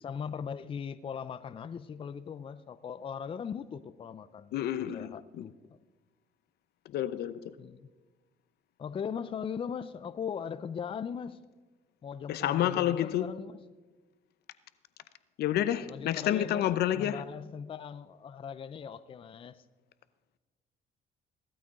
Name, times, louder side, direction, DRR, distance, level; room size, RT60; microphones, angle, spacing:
voice 1, 0.0-4.5 4.8-5.8 7.6-7.9 8.8-11.4 12.0-13.6 15.9-19.6, left 7 dB, 30° left, 0.5 m, -39 dB
voice 2, 4.5-5.5 6.9-7.5 12.3-13.3 15.4-17.2, left 11 dB, 70° left, 0.8 m, -29 dB
17.5 x 13.0 x 3.7 m
cardioid pair, 110°, 17 cm